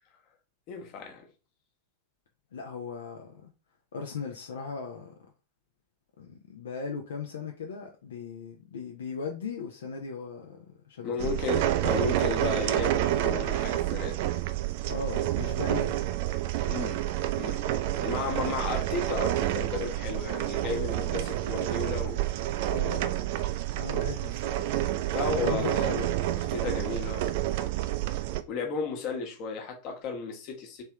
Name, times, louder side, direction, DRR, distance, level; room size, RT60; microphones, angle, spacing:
voice 1, 0.7-1.3 11.0-14.2 16.7-17.1 17.4-17.6 18.0-22.2 25.1-25.9 26.5-27.3 28.5-30.8, left 5 dB, 40° left, 1.2 m, -34 dB
voice 2, 2.5-3.5 3.9-5.1 6.2-11.6 14.9-16.0 22.6-23.3 23.8-24.8 25.3-26.2, left 5 dB, 65° left, 0.6 m, -38 dB
sound 1, 11.2-28.4, right 13 dB, 50° right, 0.3 m, -29 dB
3.3 x 3.3 x 3.0 m
figure-of-eight pair, 90°, 0 cm